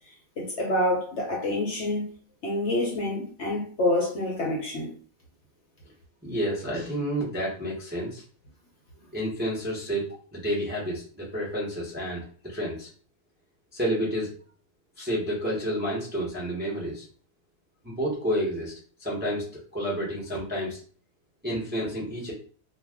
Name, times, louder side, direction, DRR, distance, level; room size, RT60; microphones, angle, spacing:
voice 1, 0.4-2.0 2.4-4.9, left 1 dB, 55° left, 0.9 m, -27 dB
voice 2, 6.2-8.2 9.1-10.1 10.3-12.9 13.7-14.3 15.0-17.0 17.8-18.7 19.0-20.8 21.4-22.3, equal, 10° right, 0.7 m, -30 dB
2.5 x 2.4 x 3.4 m
omnidirectional pair, 1.6 m